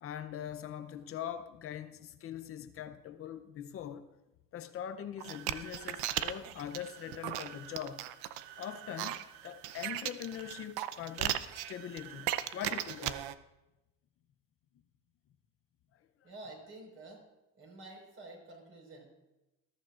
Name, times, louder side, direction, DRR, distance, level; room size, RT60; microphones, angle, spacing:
voice 1, 0.0-4.1 4.5-8.1 8.6-13.3 15.9-16.3, left 10 dB, 35° left, 0.6 m, -42 dB
sound 1, 5.2-13.3, right 13 dB, 70° right, 0.8 m, -38 dB
voice 2, 16.2-17.2 17.5-19.1, right 2 dB, 35° right, 4.9 m, -49 dB
20.5 x 14.0 x 2.5 m
cardioid pair, 160°, 39 cm